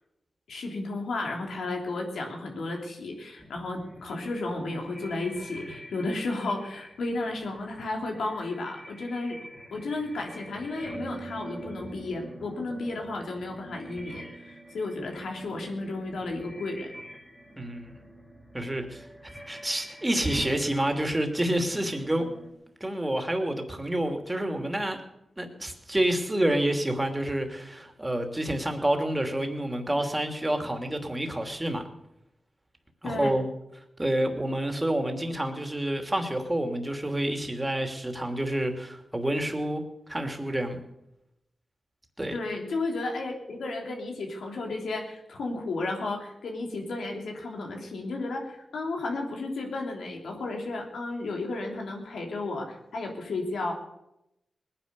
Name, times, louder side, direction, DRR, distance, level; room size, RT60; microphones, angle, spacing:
voice 1, 0.5-9.4 9.7-16.9 33.0-33.3 42.3-53.7, left 2 dB, 90° left, 1 dB, 3.3 m, -33 dB
sound 1, 3.4-22.5, right 1 dB, 10° left, 3.2 m, -46 dB
voice 2, 17.6-17.9 18.5-22.3 22.8-25.0 25.4-31.8 33.0-33.5 34.0-40.8 42.2-42.4, right 1 dB, 15° right, 5 dB, 2.9 m, -28 dB
20.0 x 10.0 x 6.9 m, 0.86 s
cardioid pair, 55°, 0 cm